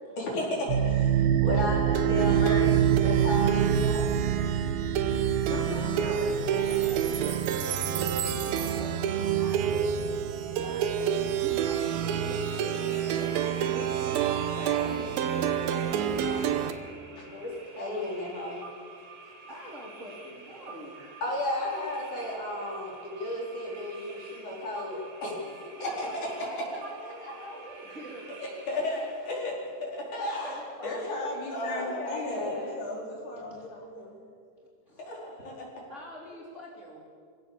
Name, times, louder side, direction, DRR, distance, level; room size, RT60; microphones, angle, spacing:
voice 1, 0.2-4.1 17.3-17.5 17.8-18.6 21.2-25.4 25.8-26.1 27.2-27.3 28.4-29.6 29.8-31.1 31.5-32.8 35.0-35.5, left 1 dB, 45° left, -3 dB, 5.8 m, -33 dB
Plucked string instrument, 0.7-16.7, right 9 dB, 70° right, 2.6 m, -26 dB
voice 2, 2.3-2.8 5.4-7.4 14.6-15.1 30.8-34.2, left 2 dB, 70° left, -2 dB, 5.9 m, -37 dB
voice 3, 5.7-9.9 10.5-17.1 19.5-21.0 25.8-28.3 30.4-31.4 33.5-33.7 34.9-35.0 35.9-37.0, equal, 20° right, -4 dB, 3.5 m, -45 dB
sound 1, 11.5-29.4, right 4 dB, 50° right, 4.1 m, -48 dB
25.5 x 17.0 x 7.2 m, 2.2 s
omnidirectional pair, 4.8 m